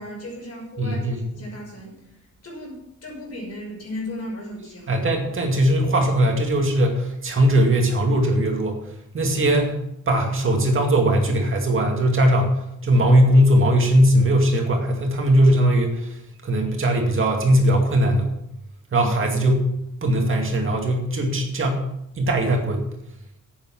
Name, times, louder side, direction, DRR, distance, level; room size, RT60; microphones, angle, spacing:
voice 1, 0.0-1.0 1.3-5.0 18.9-19.1, left 1 dB, 50° left, -1 dB, 6.0 m, -36 dB
voice 2, 0.8-1.2 4.9-8.8 9.1-9.8 10.1-18.3 18.9-19.7 20.0-21.8 22.2-22.9, right 1 dB, 40° right, 2 dB, 2.2 m, -19 dB
11.0 x 8.7 x 6.0 m, 0.81 s
cardioid pair, 120°, 31 cm